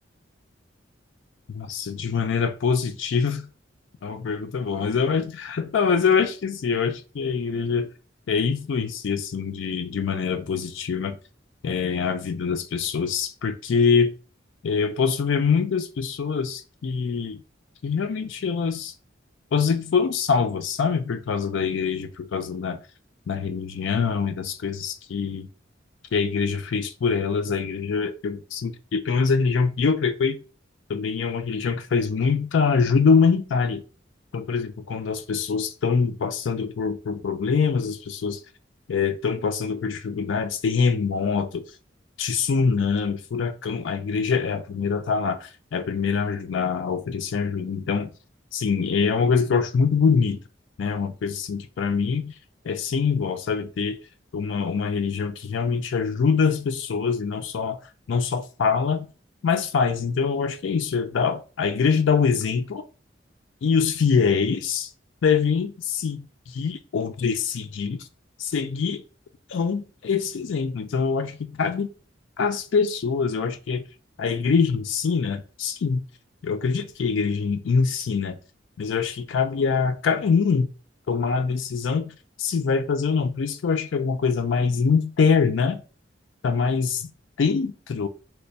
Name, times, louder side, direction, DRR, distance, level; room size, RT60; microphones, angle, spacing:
voice 1, 1.5-3.5 4.0-7.9 8.3-11.2 11.6-14.1 14.6-17.4 17.8-18.9 19.5-22.8 23.3-25.5 26.1-30.4 30.9-33.8 34.3-38.4 38.9-41.6 42.2-48.1 48.5-50.4 50.8-52.3 52.6-54.0 54.3-57.8 58.1-59.1 59.4-62.8 63.6-64.9 65.2-68.0 68.4-69.0 69.5-71.9 72.4-73.8 74.2-76.0 76.4-78.4 78.8-80.7 81.1-85.8 86.4-87.1 87.4-88.1, left 5 dB, 80° left, 0.4 m, -24 dB
3.3 x 2.1 x 4.0 m
head